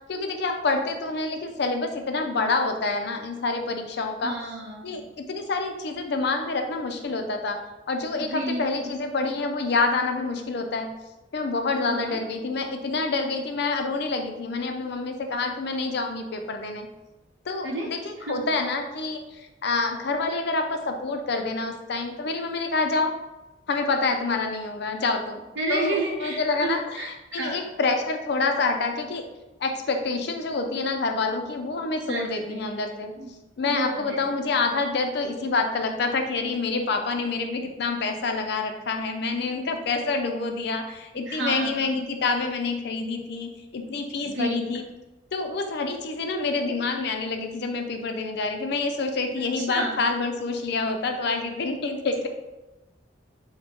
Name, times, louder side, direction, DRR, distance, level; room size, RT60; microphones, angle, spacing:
voice 1, 0.1-4.3 4.8-7.6 7.9-10.9 11.3-16.9 17.5-23.2 23.7-25.4 25.7-29.3 29.6-33.1 33.6-44.8 45.3-52.3, left 3 dB, 60° left, 5 dB, 0.5 m, -27 dB
voice 2, 4.2-5.0 8.2-8.9 11.9-12.2 17.6-17.9 18.2-18.4 25.6-27.6 32.1-32.7 33.2-33.3 33.7-34.2 41.1-42.0 44.2-44.7 49.6-50.0, right 2 dB, 70° right, -1 dB, 0.7 m, -31 dB
6.4 x 2.2 x 3.0 m, 1.0 s
head